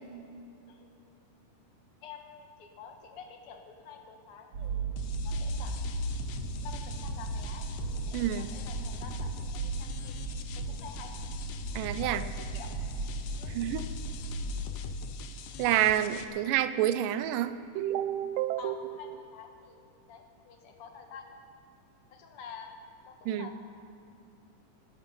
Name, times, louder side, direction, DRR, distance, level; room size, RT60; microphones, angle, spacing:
voice 1, 2.0-4.9 5.2-5.8 6.6-7.7 8.1-10.2 10.6-11.1 12.0-12.7 13.4-13.6 18.6-21.6 22.1-23.6, left 6 dB, 55° left, 3 dB, 1.9 m, -48 dB
sound 1, 4.5-14.5, right 2 dB, 55° right, 2.9 m, -36 dB
sound 2, 5.0-16.3, left 8 dB, 75° left, 2.3 m, -45 dB
voice 2, 8.1-8.5 11.8-12.2 13.5-13.9 15.6-18.8 23.3-23.5, right 12 dB, 80° right, 12 dB, 2.3 m, -29 dB
19.0 x 12.5 x 5.4 m, 2.7 s
omnidirectional pair, 3.8 m